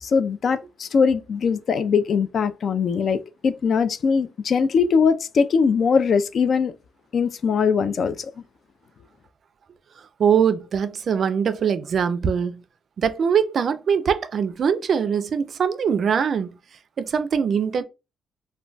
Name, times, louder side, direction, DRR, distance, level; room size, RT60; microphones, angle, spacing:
voice 1, 0.0-6.7 7.1-8.3, left 5 dB, 55° left, 0.3 m, -21 dB
voice 2, 10.2-12.6 13.0-16.5 17.0-17.8, right 7 dB, 55° right, 0.3 m, -22 dB
2.2 x 2.2 x 3.8 m
cardioid pair, 90°, 0 cm